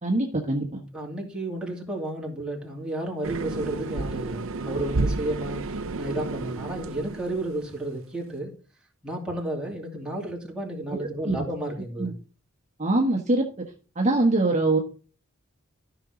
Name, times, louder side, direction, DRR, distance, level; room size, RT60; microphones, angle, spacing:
voice 1, 0.0-0.8 11.2-11.4 12.0-12.1 12.8-13.7 13.9-14.8, right 2 dB, 35° right, 1.3 m, -23 dB
voice 2, 0.9-8.5 9.0-12.1, right 1 dB, 5° right, 2.7 m, -32 dB
sound 1, 3.2-7.9, right 3 dB, 65° right, 0.7 m, -31 dB
13.5 x 6.0 x 3.9 m
head